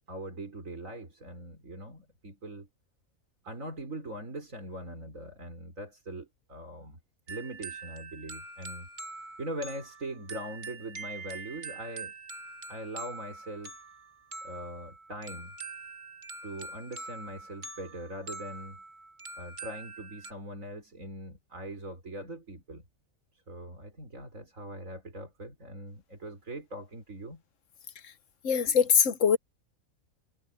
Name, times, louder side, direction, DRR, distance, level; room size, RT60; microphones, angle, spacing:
voice 1, 0.1-2.7 3.4-7.0 7.3-8.9 9.4-12.1 12.7-13.8 14.4-15.6 16.4-18.8 19.4-22.8 23.5-27.4, right 1 dB, 65° right, 5.2 m, -41 dB
sound 1, 7.3-20.3, right 3 dB, 35° right, 1.8 m, -44 dB
voice 2, 28.4-29.4, left 7 dB, 60° left, 1.4 m, -23 dB
omnidirectional pair, 1.5 m